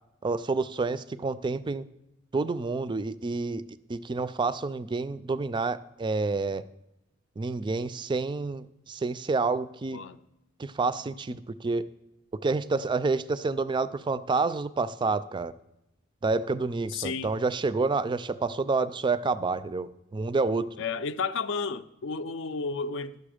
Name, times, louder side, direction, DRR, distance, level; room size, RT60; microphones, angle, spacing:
voice 1, 0.2-1.8 2.3-3.6 3.9-6.7 7.4-10.0 10.6-11.9 12.4-15.5 16.2-20.7, right 3 dB, 25° right, 0.3 m, -28 dB
voice 2, 16.9-17.3 20.8-23.2, left 4 dB, 65° left, 0.5 m, -32 dB
12.0 x 6.8 x 5.0 m
head